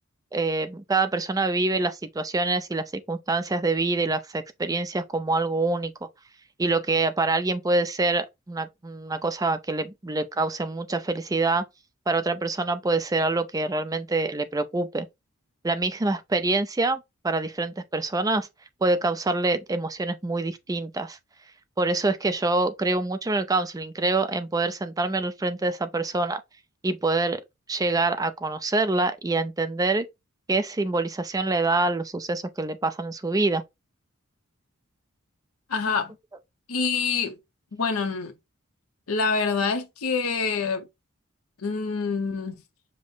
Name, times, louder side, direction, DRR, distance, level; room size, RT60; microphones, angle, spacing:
voice 1, 0.3-5.9 6.6-11.6 12.1-15.1 15.6-18.5 18.8-21.2 21.8-26.4 26.8-27.4 27.7-30.1 30.5-33.6, right 3 dB, 15° right, 0.4 m, -25 dB
voice 2, 35.7-36.1 36.7-37.4 37.7-38.3 39.1-40.9 41.6-42.6, left 5 dB, 80° left, 0.7 m, -26 dB
5.2 x 2.1 x 3.9 m
head